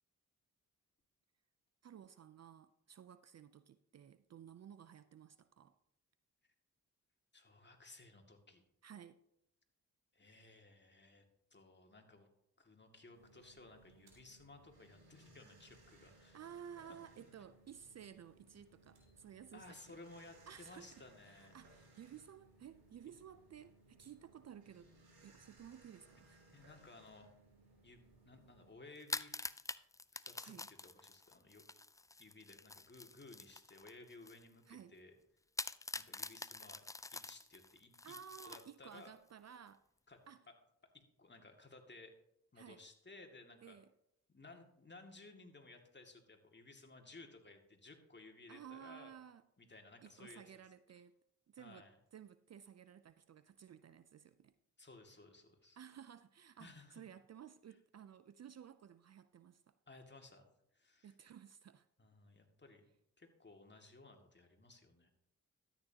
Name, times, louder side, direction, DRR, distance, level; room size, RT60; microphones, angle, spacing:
voice 1, 1.8-5.8 8.8-9.2 15.9-20.0 20.5-24.9 25.2-26.4 30.4-30.7 34.7-34.9 38.0-39.9 40.3-40.4 42.6-42.8 43.6-43.9 48.5-49.4 50.0-51.2 51.5-54.5 55.8-59.8 61.0-61.9, right 8 dB, 45° right, 0.5 m, -55 dB
voice 2, 7.3-8.6 10.1-11.3 11.5-12.3 12.6-16.4 19.5-21.6 26.5-27.3 27.8-29.4 30.1-31.6 32.2-35.2 36.0-36.8 37.1-38.1 38.4-39.1 40.1-40.2 40.9-42.1 42.5-43.8 44.3-49.1 49.6-50.4 51.6-51.9 54.8-55.8 56.6-57.0 59.9-60.5 60.7-61.1 62.0-62.9 63.2-65.1, left 3 dB, 30° left, 2.2 m, -58 dB
sound 1, 13.1-28.7, right 2 dB, 75° right, 3.3 m, -65 dB
sound 2, 29.0-34.4 34.8-34.9 35.6-39.1, left 3 dB, 10° left, 0.3 m, -46 dB
13.0 x 9.0 x 2.9 m
hypercardioid pair, 40°, 37 cm